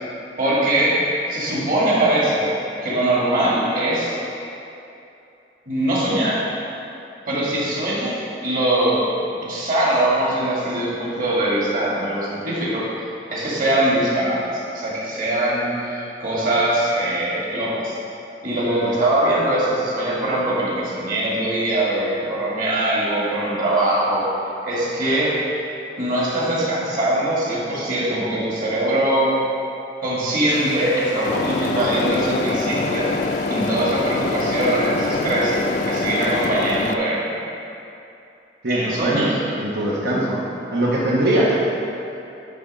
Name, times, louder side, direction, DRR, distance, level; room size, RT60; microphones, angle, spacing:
voice 1, 0.4-1.0 1.3-2.5 2.8-4.2 5.7-6.4 7.3-9.0 9.4-12.9 13.3-18.0 18.4-24.3 24.6-25.4 26.0-29.4 30.0-33.1 33.5-35.6 35.9-37.3 38.7-39.3 40.1-40.2, right 1 dB, 50° right, -6 dB, 1.9 m, -22 dB
sound 1, 30.5-36.5, left 2 dB, 90° left, 0.8 m, -34 dB
sound 2, 31.2-37.0, left 3 dB, 45° left, 0.3 m, -25 dB
voice 2, 38.6-40.4 40.7-41.6, right 1 dB, 85° right, -6 dB, 1.0 m, -21 dB
10.5 x 3.5 x 5.4 m, 2.7 s
head